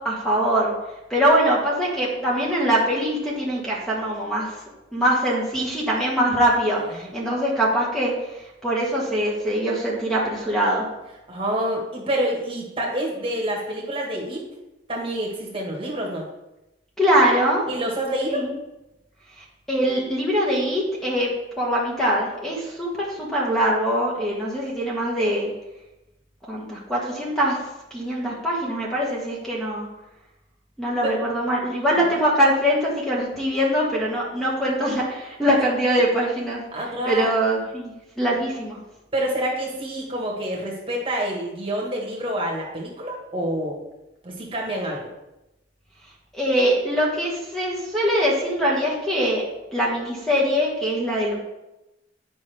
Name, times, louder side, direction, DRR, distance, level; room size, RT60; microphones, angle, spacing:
voice 1, 0.0-0.7 1.1-4.5 4.9-10.9 17.0-17.7 18.3-18.5 19.4-21.3 21.6-25.5 26.5-27.6 27.9-29.9 30.8-38.8 46.3-49.4 49.7-51.4, equal, ahead, -4 dB, 1.3 m, -23 dB
voice 2, 11.3-14.5 14.9-16.3 17.7-18.5 31.0-31.1 32.1-32.2 36.7-37.3 39.1-43.8 44.2-45.1, right 1 dB, 30° right, -2 dB, 1.5 m, -27 dB
9.5 x 5.3 x 3.4 m, 0.95 s
head